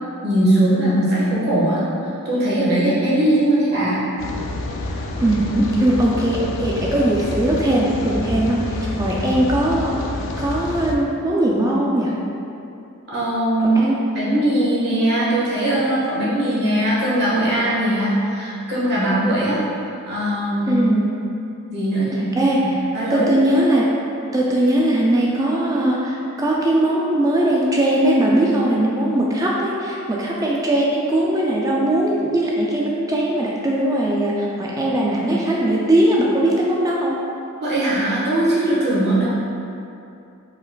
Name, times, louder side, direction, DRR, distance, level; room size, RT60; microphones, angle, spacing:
voice 1, 0.2-4.0 13.1-13.8 14.1-19.6 20.1-20.7 21.7-22.3 22.6-23.3 37.6-39.3, right 1 dB, 50° right, -9 dB, 1.4 m, -20 dB
Rain, 4.2-11.0, left 2 dB, 60° left, 0.4 m, -28 dB
voice 2, 5.1-12.1 13.6-14.1 20.7-21.0 22.3-22.8 23.1-24.0 24.3-37.2, right 1 dB, 15° right, -4 dB, 0.3 m, -20 dB
4.8 x 4.3 x 2.3 m, 2.7 s
head